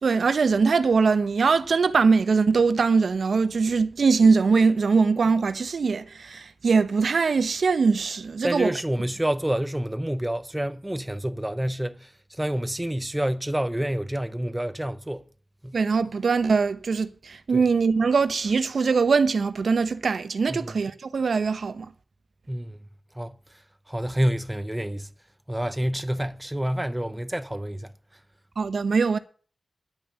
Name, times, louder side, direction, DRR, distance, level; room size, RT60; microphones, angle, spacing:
voice 1, 0.0-8.7 15.7-21.9 28.6-29.2, right 4 dB, 85° right, 0.9 m, -22 dB
voice 2, 8.4-15.3 15.6-15.8 17.5-17.6 20.5-20.7 22.5-22.8 23.1-23.4 23.9-25.1 25.5-27.9, right 1 dB, 10° right, 0.8 m, -28 dB
10.5 x 9.2 x 7.1 m
wide cardioid pair, 105°, 0 cm